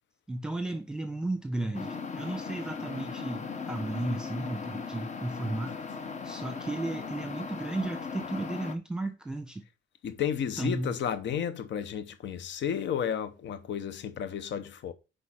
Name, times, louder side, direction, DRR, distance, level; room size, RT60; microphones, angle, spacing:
voice 1, 0.3-5.8 6.2-9.6 10.6-11.0, right 2 dB, 5° right, 1.3 m, -34 dB
sound 1, 1.7-8.8, left 5 dB, 35° left, 0.9 m, -38 dB
voice 2, 10.0-14.9, left 8 dB, 65° left, 0.8 m, -32 dB
6.1 x 5.2 x 5.8 m
cardioid pair, 90°, 20 cm